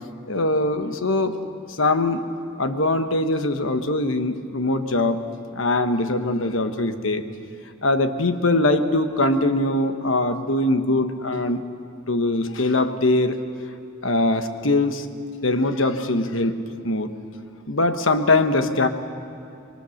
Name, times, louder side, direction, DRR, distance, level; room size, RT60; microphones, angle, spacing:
voice 1, 0.3-1.4 1.7-2.3 2.6-5.2 5.5-7.2 7.8-11.6 12.1-13.4 14.0-15.1 15.4-17.1 17.7-18.9, left 2 dB, 70° left, 8 dB, 1.2 m, -22 dB
25.5 x 22.0 x 6.5 m, 2.7 s
head